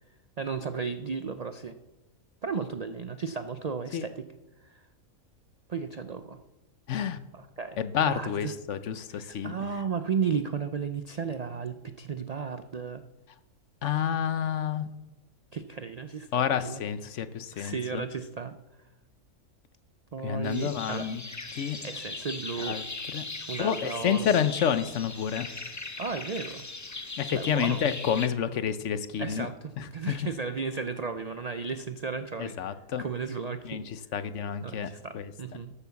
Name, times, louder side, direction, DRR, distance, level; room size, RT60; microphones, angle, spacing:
voice 1, 0.4-1.8 2.4-4.3 4.6-4.9 5.7-6.4 7.3-8.5 9.1-13.0 15.5-16.8 17.5-18.6 20.1-21.1 21.8-22.8 23.5-24.4 26.0-26.6 27.3-27.8 29.2-33.8 34.6-35.7, right 5 dB, 70° right, 10 dB, 0.3 m, -34 dB
voice 2, 6.9-7.2 7.8-9.5 13.8-14.9 16.3-18.0 20.2-21.2 21.5-21.8 22.6-22.8 23.1-23.3 23.6-25.5 27.2-29.5 29.8-30.2 32.4-33.0 33.6-35.3, left 8 dB, 65° left, 13 dB, 1.0 m, -29 dB
sound 1, 20.4-28.3, left 3 dB, 25° left, 0.4 m, -39 dB
12.5 x 8.4 x 7.0 m, 1.0 s
omnidirectional pair, 1.5 m